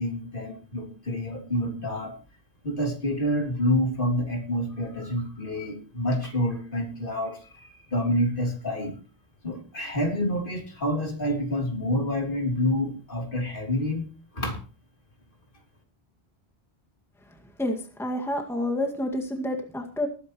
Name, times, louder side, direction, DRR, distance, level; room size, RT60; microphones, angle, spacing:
voice 1, 0.0-2.1 2.6-9.0 9.4-14.0 14.3-14.6, left 1 dB, 55° left, 2 dB, 3.4 m, -28 dB
voice 2, 17.6-20.1, left 1 dB, ahead, 3 dB, 1.9 m, -29 dB
20.0 x 10.0 x 3.1 m, 0.37 s
omnidirectional pair, 1.0 m